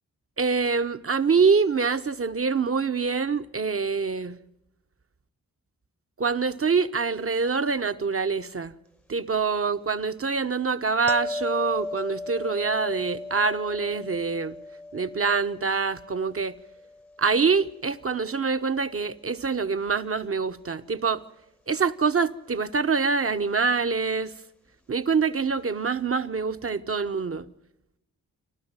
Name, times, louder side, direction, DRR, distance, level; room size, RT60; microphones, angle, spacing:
voice 1, 0.4-4.4 6.2-8.7 9.1-14.5 14.9-16.6 17.2-21.2 21.7-24.3 24.9-27.5, right 5 dB, 40° right, 1.1 m, -25 dB
sound 1, 11.1-18.1 23.3-23.5, left 2 dB, 5° left, 0.9 m, -37 dB
27.5 x 12.5 x 9.0 m
supercardioid pair, 40°, 36 cm